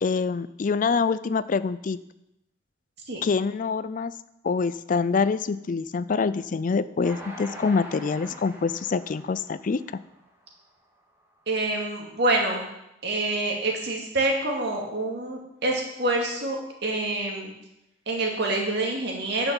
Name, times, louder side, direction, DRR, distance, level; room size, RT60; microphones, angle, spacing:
voice 1, 0.0-2.0 3.2-4.1 4.4-9.8, left 5 dB, 45° left, 15 dB, 0.4 m, -25 dB
Train, 7.0-10.5 11.0-11.1 11.4-11.5, equal, 15° right, 2.0 m, -44 dB
voice 2, 11.5-12.7 13.0-17.5 18.1-19.5, right 2 dB, 65° right, 0 dB, 2.5 m, -26 dB
10.5 x 6.1 x 7.1 m, 0.85 s
head